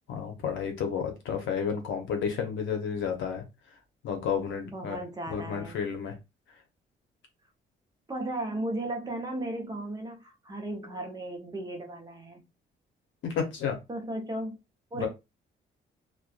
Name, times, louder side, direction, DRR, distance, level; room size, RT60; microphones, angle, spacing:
voice 1, 0.1-3.4 4.0-5.0 5.3-6.2 13.2-13.8 15.0-15.1, left 7 dB, 75° left, 0.8 m, -31 dB
voice 2, 4.6-5.8 8.1-12.4 13.9-14.6 14.9-15.1, right 1 dB, 20° right, 0.7 m, -35 dB
2.5 x 2.2 x 2.3 m
cardioid pair, 90°, 20 cm